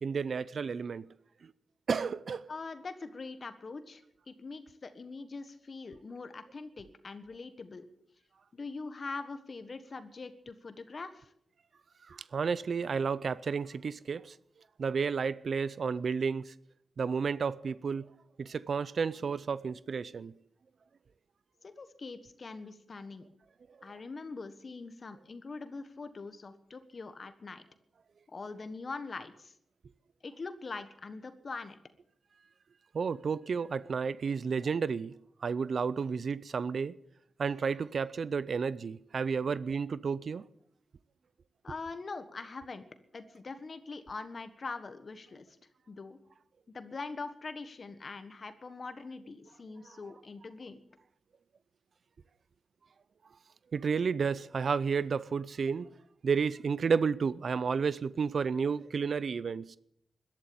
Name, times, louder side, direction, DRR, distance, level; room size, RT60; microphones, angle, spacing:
voice 1, 0.0-1.1 1.4-1.5 1.9-2.5 12.1-14.4 14.8-16.5 17.0-18.1 18.4-20.3 23.7-23.8 32.9-35.1 35.4-37.0 37.4-40.4 49.9-50.0 53.7-55.9 56.2-59.8, right 5 dB, 65° right, 0.5 m, -31 dB
voice 2, 2.5-7.8 8.5-11.3 21.6-23.3 23.8-27.6 28.3-29.5 30.2-31.8 41.6-42.9 43.1-45.6 45.9-46.2 46.7-50.8, left 4 dB, 55° left, 1.5 m, -43 dB
13.5 x 12.0 x 8.6 m
cardioid pair, 50°, 0 cm